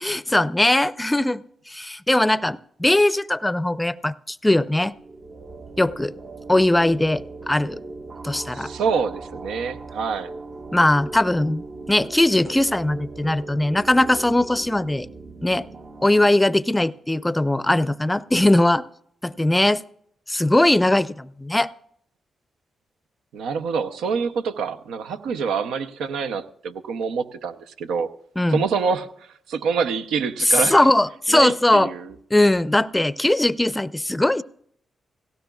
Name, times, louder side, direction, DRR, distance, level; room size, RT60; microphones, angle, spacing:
voice 1, 0.0-4.9 5.8-6.1 6.5-7.8 8.2-8.7 10.7-15.1 15.4-15.7 16.0-18.8 19.2-19.8 20.3-21.7 28.4-28.6 30.5-31.9 32.3-34.4, left 1 dB, 15° left, 0.5 m, -20 dB
sound 1, 4.7-16.3, right 3 dB, 55° right, 1.0 m, -38 dB
voice 2, 8.5-10.3 23.3-28.1 28.5-29.1 29.5-30.9 31.3-32.1, right 5 dB, 90° right, 0.6 m, -26 dB
18.0 x 16.5 x 2.3 m
supercardioid pair, 55°, 0 cm